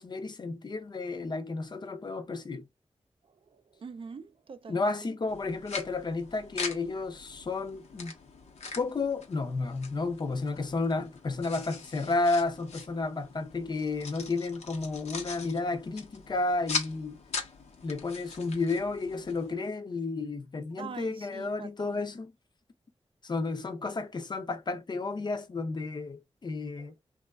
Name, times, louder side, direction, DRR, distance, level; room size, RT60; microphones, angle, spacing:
voice 1, 0.0-2.6 4.7-8.1 8.8-17.2 17.8-22.3 23.2-26.9, left 3 dB, 40° left, 0.5 m, -32 dB
voice 2, 3.3-5.1 20.8-22.0 26.8-26.9, right 5 dB, 55° right, 0.3 m, -45 dB
sound 1, 5.3-19.6, left 5 dB, 85° left, 0.7 m, -41 dB
3.0 x 2.3 x 2.3 m
wide cardioid pair, 110°, 11 cm